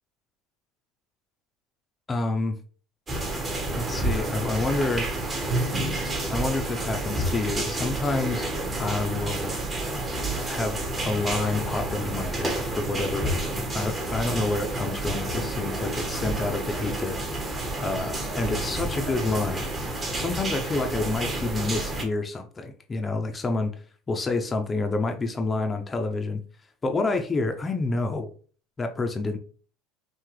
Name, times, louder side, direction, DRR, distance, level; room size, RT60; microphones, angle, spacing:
voice 1, 2.1-2.6 3.7-5.1 6.3-8.5 8.8-9.5 10.4-17.2 17.8-19.7 20.1-23.7 24.1-26.4 26.8-28.3 28.8-29.4, left 3 dB, 25° left, 6 dB, 0.7 m, -28 dB
sound 1, 3.1-22.0, right 2 dB, 25° right, 1.3 m, -30 dB
5.8 x 2.4 x 3.3 m, 0.41 s
supercardioid pair, 100°, 0 cm